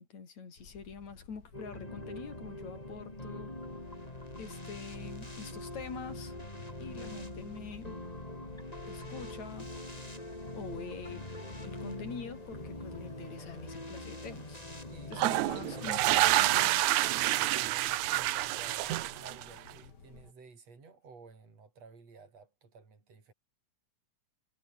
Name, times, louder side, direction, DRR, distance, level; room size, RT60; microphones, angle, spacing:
voice 1, 0.0-3.5 4.4-6.4 6.8-8.0 8.9-9.7 10.5-11.3 11.6-14.6 15.1-16.8, left 5 dB, 70° left, 5.3 m, -45 dB
sound 1, 0.6-20.3, left 5 dB, 35° left, 3.0 m, -54 dB
sound 2, 1.5-16.8, left 1 dB, 10° left, 5.1 m, -43 dB
voice 2, 14.9-15.4 17.1-23.3, right 4 dB, 60° right, 6.4 m, -54 dB
sound 3, 15.1-19.7, right 17 dB, 85° right, 2.2 m, -28 dB
omnidirectional pair, 3.3 m